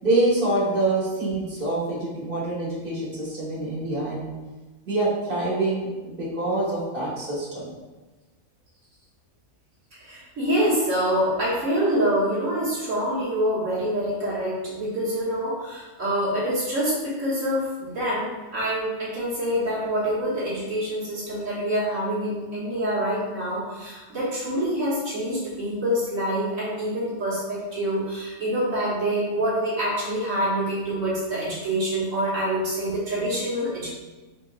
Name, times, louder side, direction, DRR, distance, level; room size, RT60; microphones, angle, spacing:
voice 1, 0.0-4.3 4.8-7.7, right 2 dB, 40° right, -8 dB, 1.7 m, -25 dB
voice 2, 10.0-33.9, equal, 75° right, -9 dB, 1.7 m, -26 dB
4.4 x 3.6 x 2.4 m, 1.2 s
omnidirectional pair, 1.4 m